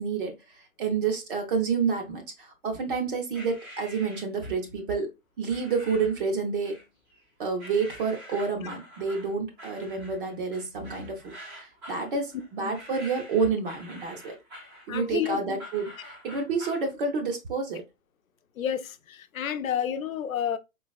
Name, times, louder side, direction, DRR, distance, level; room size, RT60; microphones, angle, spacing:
voice 1, 0.0-5.1 5.4-6.8 7.4-14.4 14.9-17.8, right 5 dB, 40° right, 0.8 m, -29 dB
sound 1, 3.3-4.7 5.5-6.2 6.6-7.2 7.6-16.9, equal, 10° right, 0.5 m, -46 dB
voice 2, 14.9-15.6 18.6-20.6, left 9 dB, 75° left, 0.6 m, -30 dB
3.9 x 2.9 x 2.3 m
hypercardioid pair, 135°, 42 cm